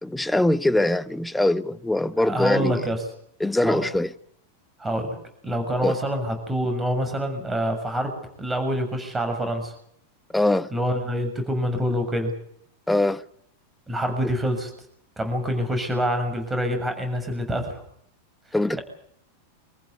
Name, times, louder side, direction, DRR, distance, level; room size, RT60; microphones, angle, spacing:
voice 1, 0.0-2.9 3.4-4.1 5.8-6.0 10.3-10.7 12.9-13.2 18.5-18.8, left 1 dB, 5° left, 1.2 m, -22 dB
voice 2, 2.2-3.0 3.6-3.8 4.8-5.2 5.4-8.1 8.4-9.7 10.7-12.3 13.9-14.7 15.2-17.8, equal, 10° right, 6.9 m, -26 dB
26.5 x 15.0 x 9.7 m
figure-of-eight pair, 90°, 0 cm